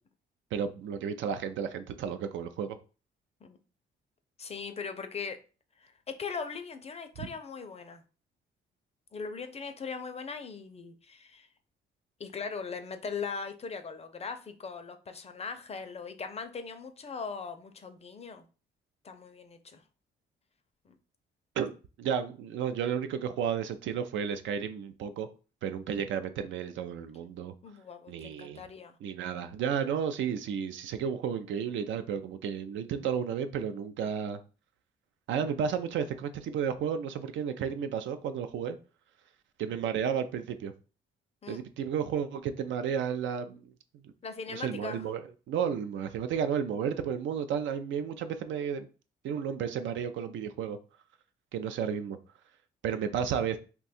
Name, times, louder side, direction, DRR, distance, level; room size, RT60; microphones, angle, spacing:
voice 1, 0.5-2.8 7.2-7.3 21.6-21.7 22.0-25.3 25.6-27.5 28.1-28.6 29.0-34.4 35.3-38.8 39.6-40.7 41.5-43.7 44.0-44.1 44.5-48.9 49.2-50.8 51.5-52.2 52.8-53.6, right 7 dB, 75° right, 0.4 m, -32 dB
voice 2, 4.4-5.4 5.8-8.0 9.1-11.5 12.2-18.5 19.0-19.8 20.9-21.0 27.6-29.0 41.4-41.6 44.2-45.1, left 5 dB, 30° left, 0.5 m, -40 dB
2.7 x 2.3 x 4.1 m
cardioid pair, 90°, 20 cm